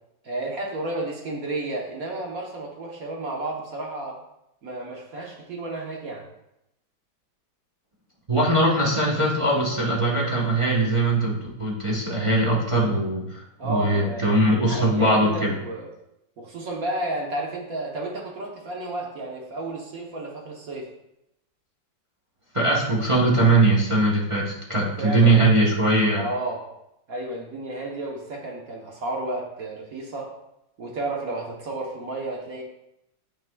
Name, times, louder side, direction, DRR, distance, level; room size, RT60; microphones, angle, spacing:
voice 1, 0.2-4.2 4.6-6.3 13.6-15.9 16.4-20.9 24.8-25.7 26.1-26.6 27.1-30.3 30.8-32.6, right 2 dB, 55° right, 0 dB, 1.3 m, -32 dB
voice 2, 8.3-15.5 22.5-26.2, right 2 dB, 25° right, -3 dB, 0.8 m, -21 dB
9.2 x 5.9 x 2.3 m, 0.85 s
omnidirectional pair, 2.1 m